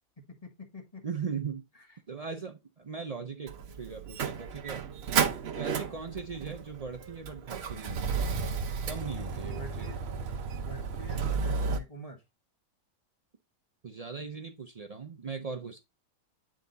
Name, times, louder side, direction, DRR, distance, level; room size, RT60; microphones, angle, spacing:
voice 1, 0.4-1.0 1.7-2.0 5.7-6.0 9.5-10.0 10.5-12.2, equal, 25° left, 2 dB, 1.5 m, -47 dB
voice 2, 1.0-1.6 2.1-4.8 5.5-8.2 8.9-9.9 13.8-15.8, right 5 dB, 85° right, 3 dB, 0.3 m, -39 dB
Motor vehicle (road), 3.5-11.8, right 5 dB, 50° right, 0.8 m, -33 dB
8.9 x 3.6 x 3.9 m, 0.24 s
omnidirectional pair, 1.7 m